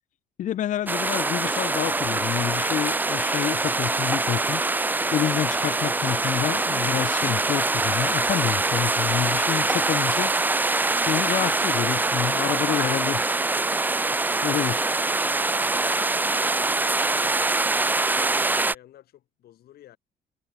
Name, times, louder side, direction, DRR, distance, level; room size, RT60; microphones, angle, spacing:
voice 1, 0.4-4.6 5.1-10.3 11.1-13.2 14.4-14.8, left 11 dB, 50° left, 0.6 m, -28 dB
sound 1, 0.9-18.7, right 3 dB, 10° right, 0.5 m, -24 dB
voice 2, 14.2-15.2 15.6-20.0, left 13 dB, 65° left, 5.3 m, -51 dB
cardioid pair, 110°, 17 cm